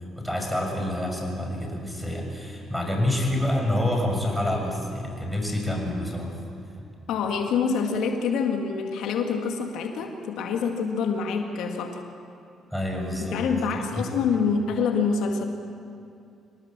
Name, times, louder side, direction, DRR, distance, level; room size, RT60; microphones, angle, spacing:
voice 1, 0.1-6.4 12.7-13.4 13.7-14.2, left 1 dB, ahead, 1 dB, 6.5 m, -27 dB
voice 2, 7.1-12.0 13.2-15.4, left 5 dB, 80° left, 3 dB, 1.9 m, -26 dB
26.0 x 18.0 x 7.5 m, 2.5 s
supercardioid pair, 75°, 0 cm